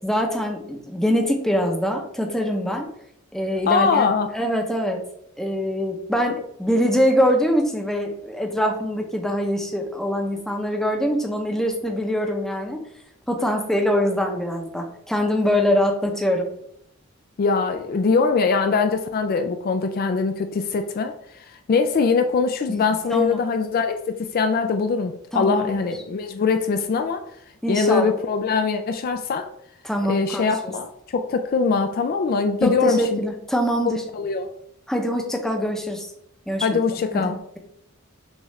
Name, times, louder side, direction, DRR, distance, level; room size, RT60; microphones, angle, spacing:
voice 1, 0.0-2.9 3.3-4.1 4.3-5.0 5.4-12.8 13.3-16.5 22.7-23.4 25.3-25.8 27.6-28.1 29.8-30.7 32.6-34.0 34.9-36.1 36.5-36.7 37.1-37.6, equal, ahead, 2 dB, 0.6 m, -23 dB
voice 2, 3.7-4.3 17.4-21.1 21.7-27.2 27.7-29.5 30.1-33.2 33.9-34.5 36.6-37.4, left 4 dB, 45° left, 7 dB, 0.3 m, -22 dB
6.3 x 2.4 x 3.2 m, 0.72 s
head